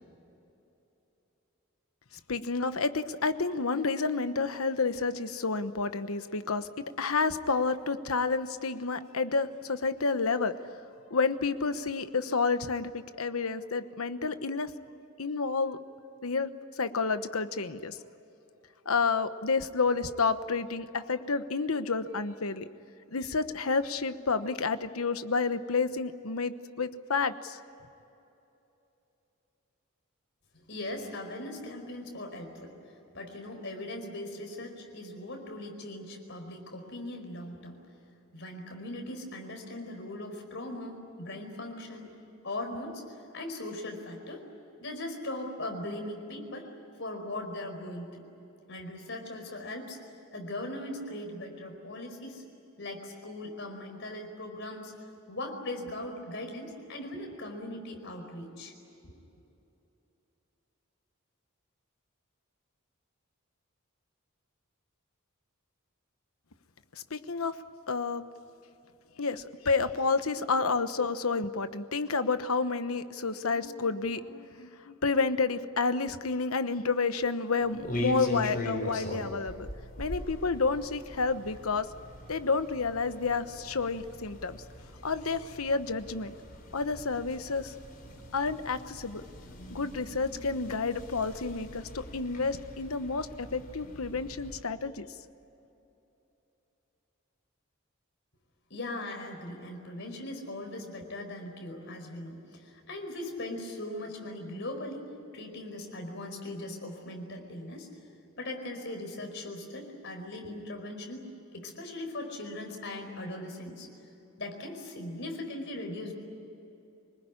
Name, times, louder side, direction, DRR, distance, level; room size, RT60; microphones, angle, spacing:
voice 1, 2.3-6.7 7.0-10.5 11.1-14.7 15.2-15.8 16.2-16.5 16.8-17.9 18.9-22.7 23.1-27.6 67.1-67.6 67.9-68.2 69.2-79.7 80.0-81.9 82.3-84.6 85.0-86.3 86.7-87.7 88.3-89.2 89.7-93.3 93.5-95.1, left 4 dB, 90° left, 11 dB, 1.1 m, -30 dB
voice 2, 30.5-32.7 33.1-37.8 38.3-42.2 42.4-43.0 43.3-44.5 44.8-46.7 47.0-48.3 48.7-50.0 50.3-52.4 52.8-54.9 55.3-58.7 98.7-107.9 108.4-111.2 111.5-113.9 114.4-116.1, left 1 dB, 60° left, 3 dB, 4.9 m, -39 dB
sound 1, 77.6-94.6, left 1 dB, 40° left, 4.2 m, -41 dB
26.5 x 20.0 x 9.7 m, 3.0 s
head